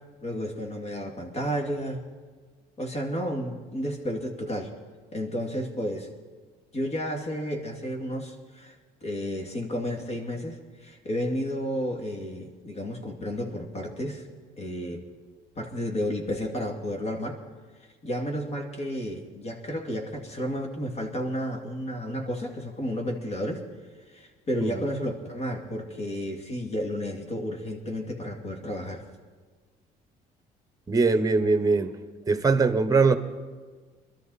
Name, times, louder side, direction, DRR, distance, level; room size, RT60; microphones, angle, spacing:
voice 1, 0.2-2.0 2.8-4.7 5.1-6.1 6.7-8.7 9.0-14.3 14.6-15.0 15.6-17.4 18.0-23.6 24.1-29.0, equal, 40° left, 2 dB, 2.6 m, -32 dB
voice 2, 30.9-31.9 32.3-33.2, right 4 dB, 20° right, 11 dB, 1.1 m, -21 dB
22.0 x 13.0 x 4.2 m, 1.5 s
cardioid pair, 110°, 17 cm